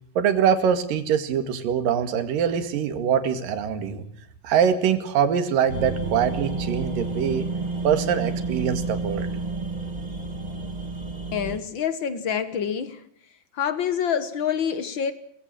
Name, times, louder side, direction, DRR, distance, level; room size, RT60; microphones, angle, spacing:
voice 1, 0.2-4.1 4.4-7.5 7.8-9.3, right 8 dB, 65° right, 9 dB, 3.6 m, -23 dB
sound 1, 5.7-11.6, right 3 dB, 20° right, 1.1 m, -30 dB
voice 2, 11.3-13.0 13.5-15.1, left 8 dB, 75° left, 13 dB, 1.1 m, -26 dB
24.0 x 20.0 x 7.9 m, 0.65 s
omnidirectional pair, 4.2 m